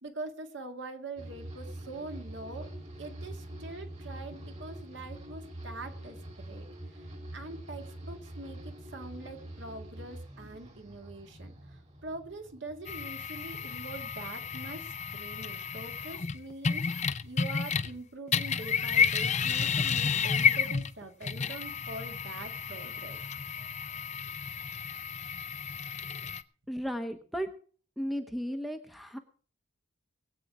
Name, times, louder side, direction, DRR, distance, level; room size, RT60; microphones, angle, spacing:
voice 1, 0.0-2.7 3.0-6.7 6.9-23.2 26.2-26.3, right 2 dB, 55° right, 5 dB, 2.0 m, -44 dB
sound 1, 1.2-14.5 14.8-15.4, right 1 dB, 30° right, 2.8 m, -45 dB
sound 2, 12.9-18.0 18.3-26.4, left 6 dB, 30° left, 0.6 m, -31 dB
voice 2, 26.7-27.5 28.0-29.2, equal, ahead, 7 dB, 0.8 m, -34 dB
21.5 x 8.5 x 4.8 m, 0.43 s
head